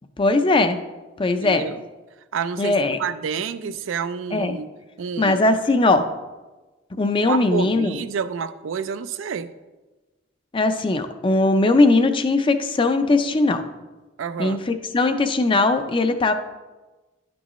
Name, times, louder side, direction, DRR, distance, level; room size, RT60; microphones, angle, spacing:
voice 1, 0.2-0.8 1.2-1.6 2.6-3.0 3.6-3.7 4.3-4.6 5.2-6.0 7.0-8.0 10.5-13.6 14.4-16.3, left 2 dB, 25° left, 8 dB, 0.5 m, -19 dB
voice 2, 1.4-1.8 2.3-4.7 5.0-5.5 7.3-9.5 14.2-14.6, right 6 dB, 80° right, 12 dB, 0.4 m, -29 dB
10.5 x 6.1 x 3.1 m, 1.2 s
head